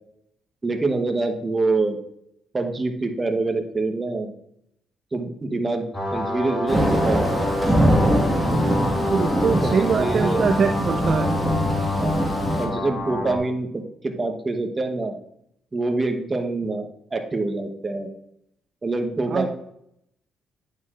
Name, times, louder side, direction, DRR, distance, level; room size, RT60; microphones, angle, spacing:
voice 1, 0.6-2.0 2.5-4.3 5.1-5.8 6.1-7.8 9.6-10.4 12.0-12.2 12.6-15.1 15.7-18.1 18.8-19.5, right 3 dB, 25° right, 5 dB, 1.1 m, -26 dB
sound 1, 5.9-13.4, left 2 dB, 25° left, 2.5 m, -27 dB
Thunder / Rain, 6.7-12.7, equal, ahead, 1.7 m, -23 dB
voice 2, 9.1-11.4 19.3-19.5, right 6 dB, 50° right, 7 dB, 0.4 m, -23 dB
9.1 x 6.6 x 2.5 m, 0.75 s
cardioid pair, 90°, 0 cm